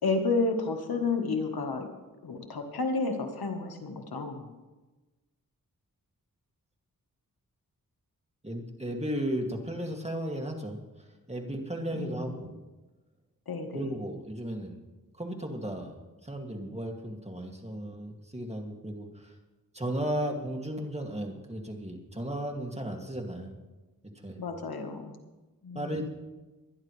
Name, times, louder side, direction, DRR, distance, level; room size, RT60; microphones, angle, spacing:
voice 1, 0.0-1.9 2.2-4.5 11.9-12.4 13.5-14.0 24.4-25.1 25.6-26.0, left 3 dB, 85° left, 4 dB, 1.5 m, -31 dB
voice 2, 8.4-10.8 11.3-12.6 13.7-14.8 15.2-15.9 16.2-19.3 19.7-23.5 24.2-24.4 25.7-26.1, right 1 dB, 20° right, 1 dB, 2.4 m, -35 dB
23.5 x 10.5 x 3.3 m, 1.2 s
cardioid pair, 50°, 36 cm